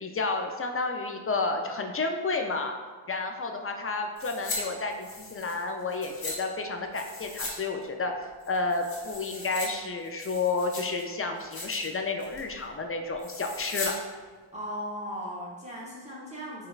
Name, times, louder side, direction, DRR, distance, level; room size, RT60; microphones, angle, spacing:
voice 1, 0.0-2.7 3.1-14.0, left 3 dB, 30° left, 4 dB, 0.3 m, -31 dB
sound 1, 4.2-4.6 4.9-6.4 6.9-7.6 7.8-7.9 8.4-9.7 10.0-11.0 11.4-11.9 12.2-12.5 13.2-13.9 14.2-14.3, left 2 dB, 70° left, 1.0 m, -38 dB
voice 2, 14.5-16.7, equal, 15° right, -7 dB, 0.8 m, -37 dB
4.9 x 2.3 x 2.3 m, 1.4 s
cardioid pair, 45°, 49 cm